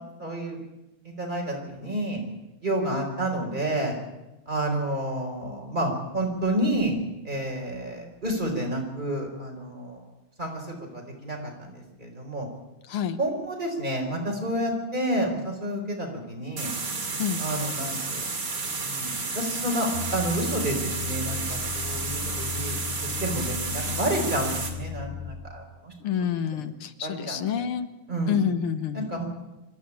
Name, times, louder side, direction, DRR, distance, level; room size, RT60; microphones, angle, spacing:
voice 1, 0.2-0.6 1.0-2.2 2.6-4.0 4.5-7.0 7.2-10.0 10.4-12.5 13.2-16.7 17.4-18.2 18.8-25.9 26.5-26.6 27.0-27.6 28.1-28.3 28.9-29.3, right 1 dB, 20° right, 1 dB, 4.9 m, -30 dB
voice 2, 12.9-13.2 17.2-17.4 26.0-27.9 28.3-29.1, left 8 dB, 75° left, 11 dB, 2.0 m, -28 dB
sound 1, 16.6-24.7, right 4 dB, 50° right, 3.2 m, -31 dB
sound 2, 19.9-25.3, left 7 dB, 60° left, 5.9 m, -36 dB
26.0 x 12.5 x 8.8 m, 1.0 s
omnidirectional pair, 2.4 m